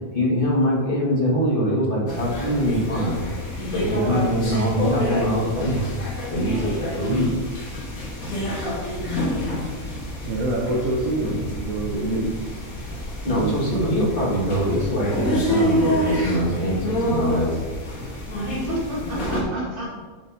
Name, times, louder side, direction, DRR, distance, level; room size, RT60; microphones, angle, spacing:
voice 1, 0.1-3.2 3.7-7.3 9.4-9.5 13.2-17.5, equal, 40° left, -4 dB, 2.1 m, -23 dB
sound 1, 2.1-19.4, equal, 75° left, 1.9 m, -28 dB
voice 2, 10.3-12.3 13.3-13.5, right 2 dB, 75° right, -2 dB, 1.4 m, -25 dB
voice 3, 18.4-20.0, equal, 40° right, -6 dB, 2.2 m, -31 dB
8.6 x 7.1 x 2.8 m, 1.4 s
omnidirectional pair, 1.5 m